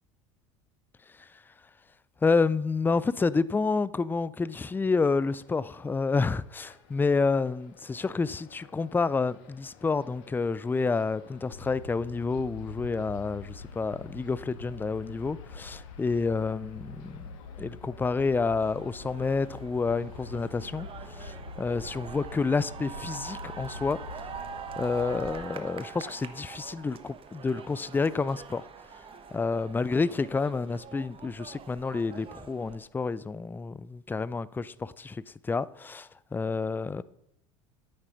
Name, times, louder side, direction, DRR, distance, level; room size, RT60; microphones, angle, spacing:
voice 1, 2.2-17.3 17.6-24.2 24.8-28.6 29.3-37.0, left 4 dB, 10° left, 0.4 m, -29 dB
sound 1, 4.6-21.0, left 6 dB, 60° left, 1.9 m, -56 dB
sound 2, 11.5-25.3, left 4 dB, 85° left, 1.0 m, -45 dB
sound 3, 18.6-32.8, right 7 dB, 35° right, 1.1 m, -44 dB
8.9 x 8.6 x 5.8 m
figure-of-eight pair, 70°, 17 cm